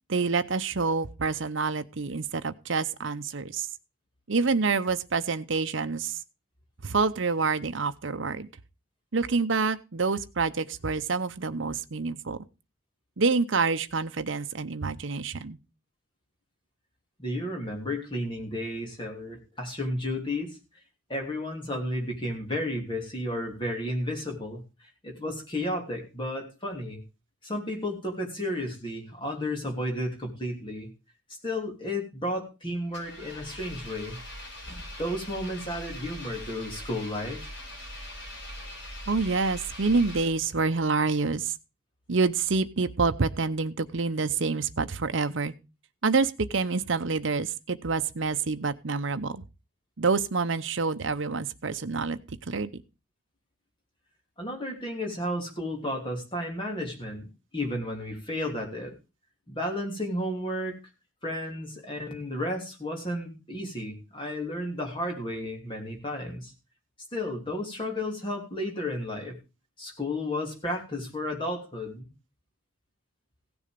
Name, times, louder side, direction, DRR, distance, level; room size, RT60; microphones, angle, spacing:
voice 1, 0.1-3.7 4.3-6.2 6.8-8.5 9.1-12.4 13.2-15.6 39.1-41.5 42.1-45.5 46.0-49.4 50.0-52.2 52.5-52.8, right 4 dB, 60° right, 10 dB, 0.7 m, -27 dB
voice 2, 17.2-20.6 21.1-27.0 27.4-30.9 31.4-34.2 34.7-37.6 54.4-57.2 57.5-58.9 59.5-60.8 61.2-66.5 67.1-69.4 69.8-72.1, left 1 dB, 25° left, 1 dB, 3.1 m, -33 dB
Engine, 32.9-40.7, left 1 dB, 60° left, 4.1 m, -42 dB
16.5 x 7.1 x 5.2 m, 0.30 s
head